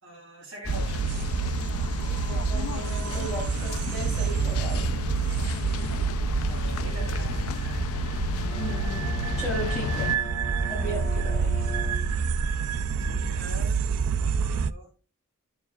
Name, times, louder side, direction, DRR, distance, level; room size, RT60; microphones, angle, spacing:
voice 1, 0.0-1.2 6.4-7.8 13.0-13.9 14.4-14.9, right 1 dB, 60° right, 3.5 m, -43 dB
sound 1, 0.6-10.2, left 7 dB, 75° left, 0.3 m, -34 dB
sound 2, 0.7-14.7, right 5 dB, 85° right, 0.4 m, -28 dB
voice 2, 2.0-4.9 8.5-10.3 10.7-11.5, right 1 dB, 5° right, 4.8 m, -36 dB
Bowed string instrument, 8.4-12.6, left 1 dB, 30° left, 3.0 m, -41 dB
11.5 x 7.1 x 2.3 m
head